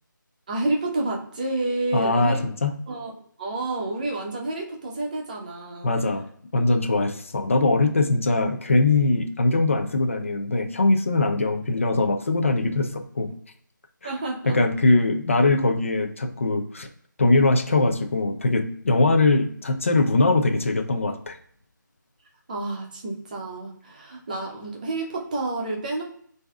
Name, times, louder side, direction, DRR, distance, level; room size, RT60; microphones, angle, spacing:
voice 1, 0.5-2.4 2.9-3.1 3.4-5.9 14.0-14.6 22.5-26.0, right 2 dB, 25° right, 0 dB, 0.7 m, -29 dB
voice 2, 1.9-2.8 5.8-6.3 6.5-13.3 14.5-16.9 17.2-21.4, left 2 dB, 40° left, 6 dB, 0.5 m, -21 dB
6.4 x 2.7 x 2.3 m, 0.63 s
figure-of-eight pair, 160°, 11 cm